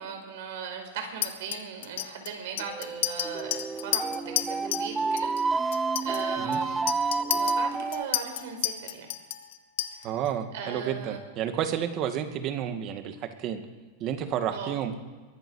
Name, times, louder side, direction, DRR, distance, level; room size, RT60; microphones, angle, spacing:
voice 1, 0.0-9.1 10.0-10.2 10.5-11.2 14.5-14.7, right 6 dB, 70° right, 4 dB, 5.0 m, -38 dB
Chink clink, 1.2-4.9 5.2-5.4 5.7-10.3, left 13 dB, 75° left, 1.4 m, -32 dB
sound 1, 2.6-8.0, right 4 dB, 10° right, 0.4 m, -29 dB
voice 2, 10.0-13.6 14.0-14.9, right 9 dB, 40° right, 7 dB, 2.0 m, -31 dB
22.5 x 8.3 x 6.5 m, 1.3 s
supercardioid pair, 130°, 0 cm